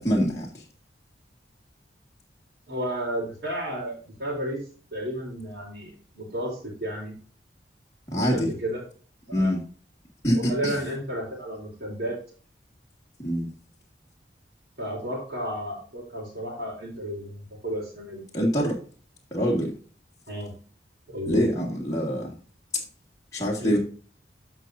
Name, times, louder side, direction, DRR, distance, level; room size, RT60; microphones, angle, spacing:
voice 1, 0.0-0.5 8.1-8.5 9.3-9.6 10.2-10.8 13.2-13.5 18.3-18.8 19.3-19.7 21.3-22.4 23.3-23.8, equal, 20° left, -4 dB, 1.8 m, -24 dB
voice 2, 2.7-4.6 4.9-7.1 8.1-8.8 9.3-9.5 10.3-12.2 14.8-18.2 20.3-20.6 21.1-21.4 23.6-23.8, right 1 dB, 70° right, -8 dB, 3.7 m, -32 dB
14.0 x 5.4 x 2.6 m, 0.41 s
head